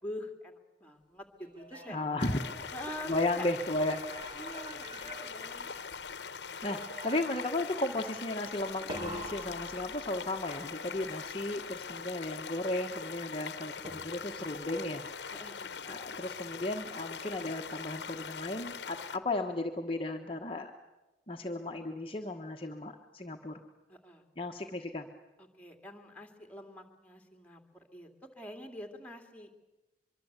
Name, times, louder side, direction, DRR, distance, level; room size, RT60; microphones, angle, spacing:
voice 1, 0.0-2.0 2.7-3.5 4.4-5.7 15.3-15.8 23.9-24.2 25.4-28.1 28.4-29.5, left 1 dB, 10° left, 3 dB, 2.4 m, -45 dB
sound 1, 1.4-3.3 3.7-6.1 6.6-7.6 8.9-10.5 13.8-14.5, right 1 dB, 25° right, 3.9 m, -47 dB
voice 2, 1.9-2.7 3.1-4.4 6.6-15.4 15.8-20.7 21.3-23.6 24.4-25.1, left 2 dB, 30° left, 3 dB, 1.2 m, -35 dB
sound 2, 2.2-19.2, left 6 dB, 75° left, 1.1 m, -42 dB
24.5 x 23.5 x 8.2 m, 1.1 s
head